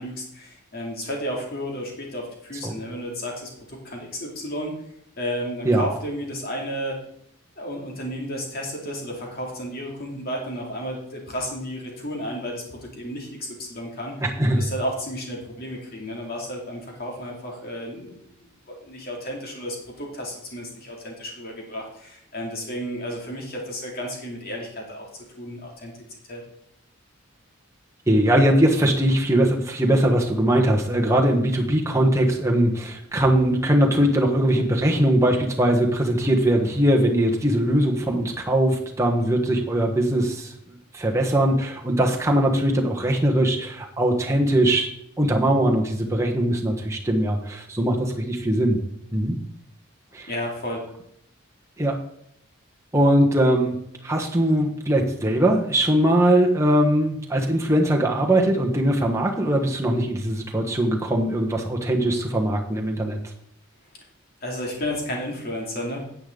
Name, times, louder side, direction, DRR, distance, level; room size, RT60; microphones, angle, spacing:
voice 1, 0.0-4.7 5.2-7.0 7.6-14.2 14.5-18.2 18.7-25.1 25.4-25.9 26.3-26.4 50.3-50.9 64.4-66.0, equal, 45° left, 0 dB, 2.6 m, -32 dB
voice 2, 14.2-14.7 28.1-40.5 40.9-44.9 45.2-48.8 49.1-49.4 50.1-50.3 51.8-52.0 52.9-53.8 54.0-63.2, right 1 dB, 15° right, 0 dB, 1.2 m, -21 dB
10.0 x 8.4 x 3.8 m, 0.73 s
head